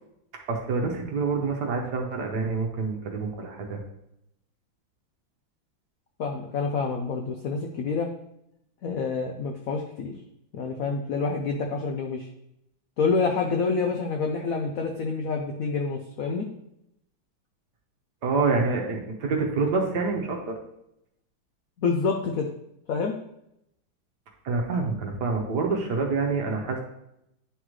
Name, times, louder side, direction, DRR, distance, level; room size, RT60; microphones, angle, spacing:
voice 1, 0.5-3.8 18.2-20.6 24.4-26.8, right 4 dB, 60° right, 1 dB, 1.4 m, -27 dB
voice 2, 6.2-8.1 8.8-10.1 10.5-12.3 13.0-16.5 21.8-22.5 22.9-23.1, left 4 dB, 90° left, 2 dB, 0.7 m, -27 dB
9.6 x 3.8 x 3.1 m, 0.79 s
omnidirectional pair, 2.2 m